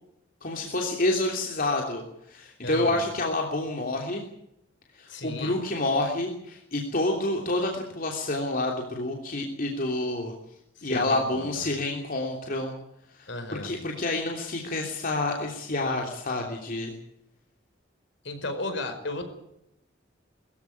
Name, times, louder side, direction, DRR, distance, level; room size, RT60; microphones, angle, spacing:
voice 1, 0.4-2.0 2.3-4.2 4.9-10.3 10.8-12.7 13.2-13.3 13.6-16.9, left 2 dB, 45° left, 1 dB, 3.2 m, -28 dB
voice 2, 2.6-3.0 5.1-5.6 10.7-11.7 13.3-13.7 18.2-19.2, left 2 dB, 65° left, 7 dB, 5.1 m, -35 dB
22.0 x 15.5 x 9.6 m, 0.80 s
head